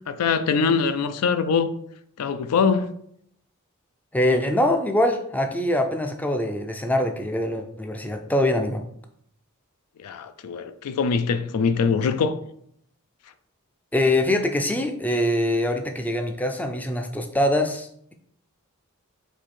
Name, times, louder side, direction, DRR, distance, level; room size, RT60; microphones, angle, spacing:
voice 1, 0.1-1.7 2.2-2.9 10.0-12.4, left 5 dB, 80° left, 0.4 m, -23 dB
voice 2, 4.1-8.8 13.9-18.1, left 1 dB, 5° left, 0.3 m, -23 dB
4.5 x 2.6 x 4.2 m
head